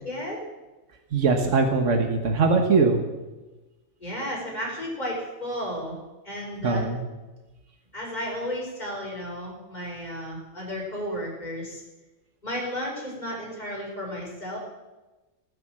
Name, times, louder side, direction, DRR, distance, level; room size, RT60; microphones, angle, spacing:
voice 1, 0.0-0.4 4.0-6.0 6.3-6.9 7.9-11.8 12.4-14.6, equal, 35° left, -4 dB, 5.3 m, -33 dB
voice 2, 1.1-3.0 6.6-7.0, right 4 dB, 85° right, 5 dB, 1.6 m, -21 dB
18.5 x 7.6 x 7.5 m, 1.1 s
omnidirectional pair, 1.2 m